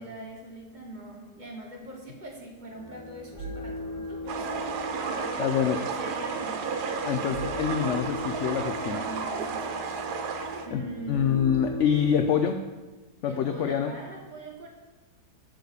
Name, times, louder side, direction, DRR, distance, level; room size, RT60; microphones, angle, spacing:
voice 1, 0.0-4.5 5.1-7.2 8.8-10.0 10.6-11.4 13.3-14.7, right 1 dB, 30° right, -1 dB, 1.3 m, -42 dB
sound 1, 2.7-12.2, left 1 dB, 30° left, 3.5 m, -39 dB
sound 2, 4.3-10.7, right 5 dB, 80° right, 1.3 m, -32 dB
voice 2, 5.4-5.8 7.0-9.0 10.7-10.8 11.1-12.6 13.2-13.9, left 8 dB, 70° left, 6 dB, 0.7 m, -26 dB
9.3 x 4.0 x 6.7 m, 1.2 s
omnidirectional pair, 1.7 m